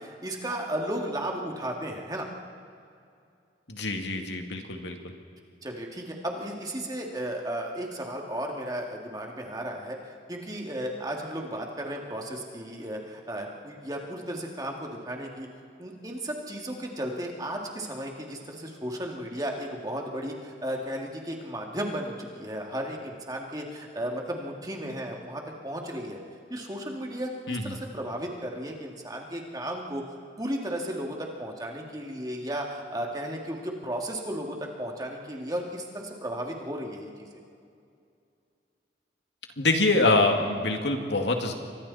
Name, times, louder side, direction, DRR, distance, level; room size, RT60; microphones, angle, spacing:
voice 1, 0.0-2.3 5.6-15.5 15.8-26.2 26.5-30.0 30.4-37.3, right 1 dB, 20° right, 0 dB, 2.6 m, -34 dB
voice 2, 3.7-5.1 27.5-27.8 39.6-41.5, left 2 dB, 85° left, 4 dB, 2.4 m, -25 dB
30.0 x 24.5 x 4.3 m, 2.4 s
head